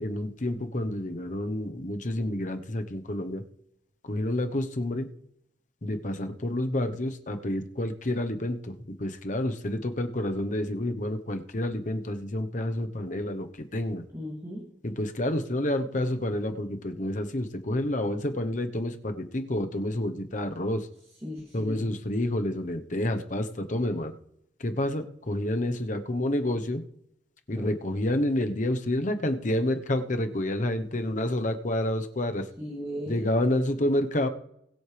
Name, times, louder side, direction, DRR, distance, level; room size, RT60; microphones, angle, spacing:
voice 1, 0.0-3.4 4.0-5.1 5.8-8.7 9.0-14.0 14.8-20.9 21.5-24.1 24.6-26.8 27.5-32.5 33.1-34.3, left 1 dB, 40° left, 7 dB, 1.0 m, -29 dB
voice 2, 14.1-14.7 21.2-21.9 27.6-27.7 32.6-33.3, equal, 20° right, -3 dB, 2.6 m, -37 dB
21.5 x 8.0 x 3.4 m, 0.78 s
head